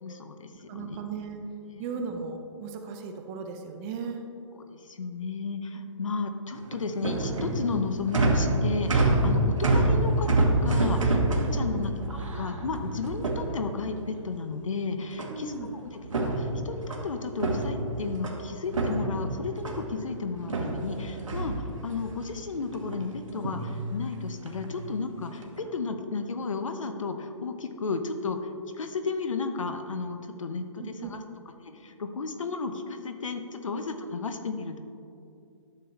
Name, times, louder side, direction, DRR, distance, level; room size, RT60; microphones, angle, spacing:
voice 1, 0.0-1.0 1.7-2.0 4.5-28.5 28.8-31.2 31.6-34.8, left 4 dB, 80° left, 7 dB, 0.9 m, -33 dB
voice 2, 0.7-1.4 1.8-4.2 11.5-11.9 15.3-15.7 20.4-20.5 30.8-31.1 33.7-33.8, right 5 dB, 25° right, 5 dB, 0.7 m, -37 dB
sound 1, 6.5-14.1 15.2-15.7 16.0-18.4 18.7-20.0 20.5-22.1 22.6-23.0 23.3-23.7 24.4-24.8 25.3-25.6, right 2 dB, 90° right, 1.3 m, -27 dB
11.5 x 6.8 x 3.2 m, 2.6 s
hypercardioid pair, 145°, 16 cm